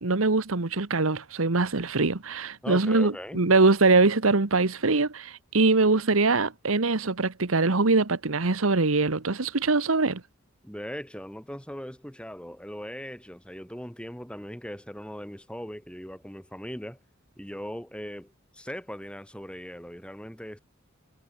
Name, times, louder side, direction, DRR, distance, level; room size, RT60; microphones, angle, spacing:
voice 1, 0.0-10.2, right 3 dB, 90° right, 1.3 m, -23 dB
voice 2, 2.6-3.5 10.6-17.0 17.4-20.6, equal, 5° left, 7.5 m, -39 dB
head